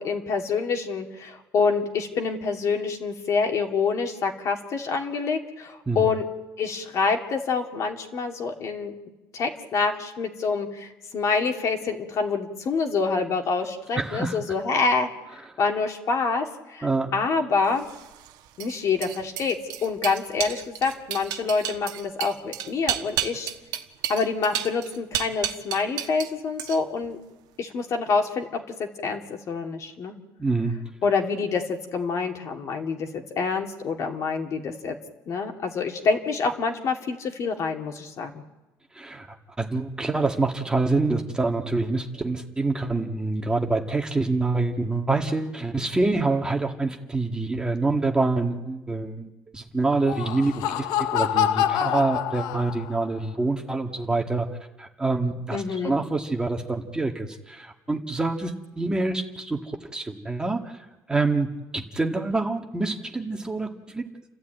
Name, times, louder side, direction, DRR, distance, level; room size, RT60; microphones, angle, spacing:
voice 1, 0.0-6.3 6.6-8.9 9.3-15.1 15.6-16.9 17.1-17.9 18.6-23.5 24.1-27.2 27.6-30.1 31.0-34.9 35.3-38.4 55.5-55.9, left 4 dB, 50° left, 3 dB, 2.5 m, -26 dB
voice 2, 13.9-14.4 16.8-17.1 30.4-30.8 38.9-39.3 39.6-54.5 54.8-61.5 61.7-64.1, right 3 dB, 10° right, 3 dB, 1.6 m, -26 dB
sound 1, 17.8-26.3 26.6-27.1, right 11 dB, 85° right, 1.3 m, -32 dB
Laughter, 49.9-53.1, left 11 dB, 90° left, 0.8 m, -26 dB
29.5 x 12.5 x 9.1 m, 1.1 s
cardioid pair, 130°, 7 cm